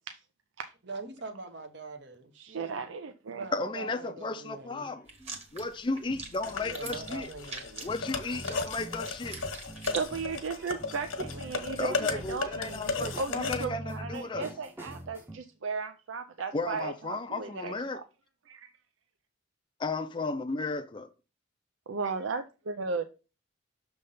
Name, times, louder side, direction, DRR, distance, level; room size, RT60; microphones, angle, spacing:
voice 1, 0.8-2.9 3.3-4.9 6.5-8.0, right 3 dB, 60° right, 1.0 m, -43 dB
voice 2, 2.4-3.4 9.9-18.0 18.5-18.7 21.9-23.1, right 4 dB, 75° right, 0.5 m, -36 dB
voice 3, 3.5-5.0 5.5-7.3 7.8-9.4 11.8-14.5 16.5-18.0 19.8-21.1, left 3 dB, 25° left, 0.5 m, -34 dB
sound 1, 3.6-4.2 4.8-15.4, right 1 dB, 10° right, 0.8 m, -46 dB
sound 2, 5.1-10.0, right 4 dB, 30° right, 1.6 m, -44 dB
sound 3, 6.4-13.6, left 4 dB, 85° left, 1.3 m, -36 dB
6.6 x 3.4 x 5.5 m
head